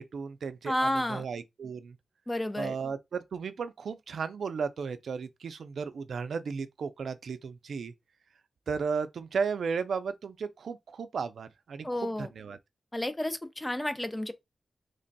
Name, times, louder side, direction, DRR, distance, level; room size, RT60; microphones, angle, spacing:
voice 1, 0.0-2.0 2.6-7.9 8.7-12.6, right 5 dB, 75° right, 0.4 m, -35 dB
voice 2, 0.6-1.2 2.3-2.8 11.8-12.3 12.9-14.3, left 1 dB, 10° left, 0.4 m, -31 dB
3.2 x 2.2 x 3.9 m
wide cardioid pair, 175°, 0 cm